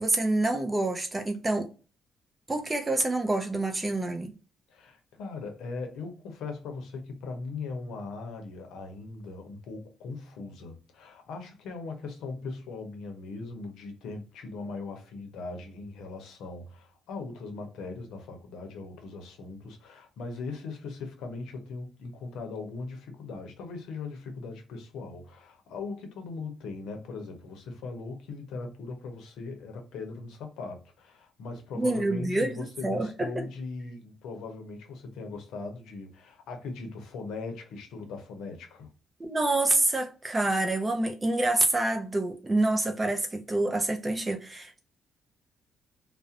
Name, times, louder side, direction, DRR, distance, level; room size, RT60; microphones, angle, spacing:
voice 1, 0.0-1.7 2.5-4.3 31.8-33.3 39.2-44.8, right 2 dB, 20° right, 0.5 m, -27 dB
voice 2, 4.7-38.9, left 3 dB, 85° left, 0.6 m, -39 dB
2.4 x 2.0 x 2.6 m
cardioid pair, 90°, 0 cm